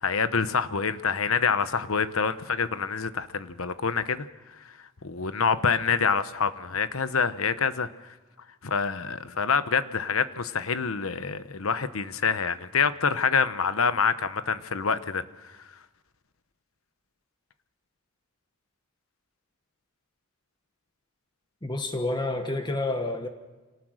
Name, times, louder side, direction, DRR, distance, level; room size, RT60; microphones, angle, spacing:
voice 1, 0.0-4.3 5.0-7.9 8.6-15.2, left 5 dB, 90° left, 12 dB, 1.0 m, -26 dB
voice 2, 21.6-23.3, left 2 dB, 20° left, 6 dB, 1.3 m, -29 dB
25.5 x 18.5 x 6.5 m, 1.2 s
head